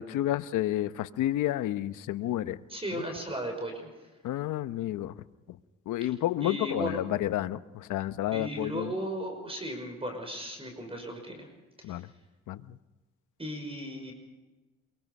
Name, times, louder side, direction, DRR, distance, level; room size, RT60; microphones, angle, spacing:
voice 1, 0.0-2.6 4.2-5.1 5.9-8.9 11.8-12.1 12.5-12.8, left 13 dB, 85° left, 12 dB, 1.0 m, -30 dB
voice 2, 2.7-3.9 6.0-6.1 6.4-7.0 8.3-11.5 11.9-12.0 13.4-14.1, right 1 dB, 20° right, 4 dB, 5.6 m, -36 dB
26.5 x 23.5 x 5.5 m, 1.2 s
cardioid pair, 90°, 30 cm